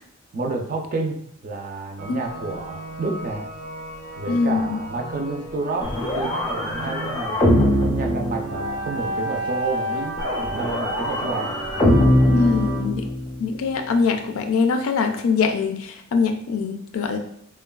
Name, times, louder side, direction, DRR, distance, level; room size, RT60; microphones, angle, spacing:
voice 1, 0.3-3.5 4.2-10.2 10.5-11.6 12.3-12.4, right 3 dB, 40° right, 2 dB, 0.4 m, -30 dB
sound 1, 2.0-12.8, right 1 dB, 85° right, 0.7 m, -33 dB
voice 2, 4.3-4.8 12.3-13.0 13.4-17.2, left 4 dB, 80° left, 6 dB, 0.4 m, -23 dB
sound 2, 5.8-9.1 10.2-13.4, left 1 dB, 20° left, 0.5 m, -22 dB
3.2 x 2.2 x 2.2 m, 0.68 s
head